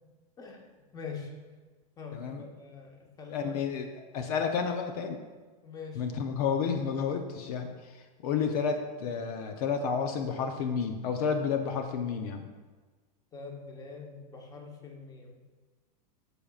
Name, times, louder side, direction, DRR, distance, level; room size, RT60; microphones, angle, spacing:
voice 1, 0.9-1.3 2.0-3.6 5.6-6.2 8.3-8.5 13.3-15.4, left 5 dB, 20° left, 1 dB, 1.1 m, -43 dB
voice 2, 3.3-5.2 6.0-7.7 8.2-12.5, left 6 dB, 60° left, 5 dB, 0.8 m, -31 dB
15.0 x 5.2 x 2.4 m, 1.4 s
supercardioid pair, 140°, 21 cm